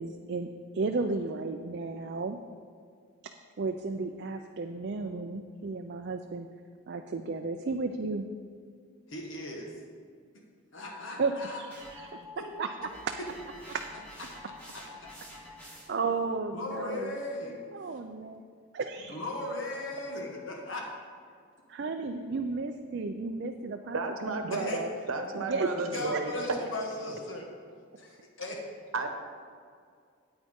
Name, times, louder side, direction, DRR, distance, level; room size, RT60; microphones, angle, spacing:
voice 1, 0.0-2.4 3.2-6.5 6.9-8.3 11.2-12.9 13.7-14.1 15.9-17.2 17.7-18.4 18.7-19.2 21.7-24.0 24.3-24.8 25.5-25.7 26.1-26.2, right 4 dB, 55° right, 5 dB, 0.4 m, -34 dB
voice 2, 9.1-9.7 10.7-11.6 12.4-12.5 14.7-15.1 16.5-17.6 19.1-20.9 24.5-24.8 25.9-27.5 28.0-28.6, left 2 dB, 70° left, 0 dB, 1.2 m, -37 dB
sound 1, 11.7-16.1, left 1 dB, 5° left, 2.1 m, -48 dB
voice 3, 23.9-26.3 28.9-29.1, right 3 dB, 90° right, 5 dB, 1.0 m, -32 dB
9.1 x 8.9 x 3.6 m, 2.2 s
head